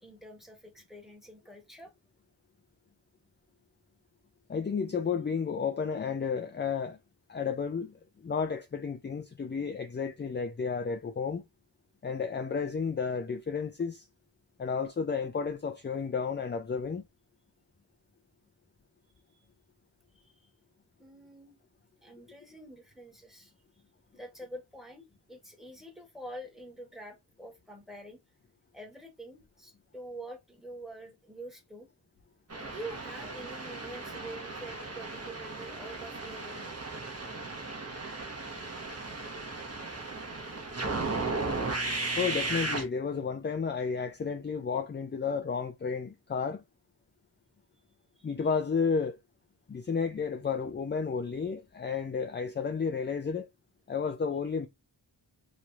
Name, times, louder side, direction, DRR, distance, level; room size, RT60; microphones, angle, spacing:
voice 1, 0.0-1.9 20.1-20.5 21.0-21.6 22.0-23.5 24.1-28.2 28.7-31.9 32.5-36.9 40.3-40.5 48.2-48.3, right 1 dB, ahead, 1.2 m, -46 dB
voice 2, 4.5-7.0 7.3-11.4 12.0-14.1 14.6-17.0 42.2-46.6 48.2-49.2 49.7-53.5 53.9-54.7, left 5 dB, 25° left, 0.4 m, -32 dB
sound 1, 32.5-42.8, right 3 dB, 35° right, 1.0 m, -36 dB
3.0 x 2.6 x 3.1 m
wide cardioid pair, 95°, 44 cm